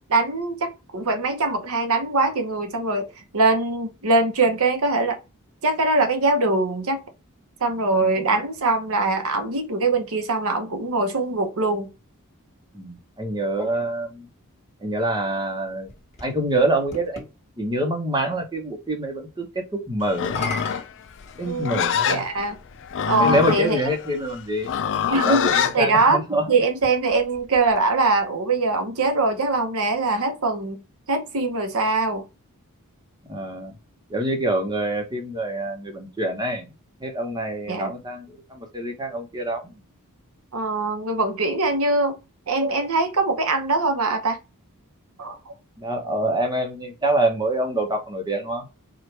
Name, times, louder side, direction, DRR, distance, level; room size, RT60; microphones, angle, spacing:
voice 1, 0.1-5.2 5.6-7.0 7.6-11.9 21.5-22.6 23.1-23.8 25.1-26.2 26.5-30.8 31.1-32.2 37.7-37.9 40.5-42.2 42.5-44.4 45.2-45.5, right 3 dB, 65° right, 0.9 m, -22 dB
voice 2, 8.0-8.3 12.7-14.3 14.8-15.9 16.2-17.3 17.6-20.5 21.4-22.2 23.2-24.7 25.2-26.5 33.3-33.7 34.1-36.7 37.0-39.8 45.8-48.7, right 1 dB, 20° right, 1.0 m, -26 dB
sound 1, 15.5-17.3 20.1-21.9 22.9-23.0 26.7-28.2, left 3 dB, 30° left, 1.5 m, -37 dB
Livestock farm animals working animals, 20.1-25.8, left 8 dB, 55° left, 0.5 m, -25 dB
4.5 x 2.4 x 3.2 m
head